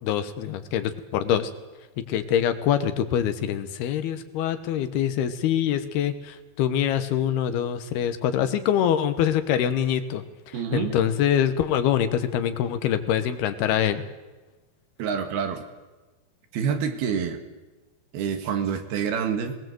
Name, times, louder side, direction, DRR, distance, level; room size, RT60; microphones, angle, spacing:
voice 1, 0.0-1.5 2.0-10.2 10.7-14.0, left 9 dB, 85° left, 10 dB, 3.2 m, -24 dB
voice 2, 10.5-11.0 15.0-15.7 16.5-17.4 18.1-19.6, right 7 dB, 85° right, 7 dB, 3.6 m, -27 dB
19.5 x 19.5 x 7.9 m, 1.2 s
omnidirectional pair, 4.4 m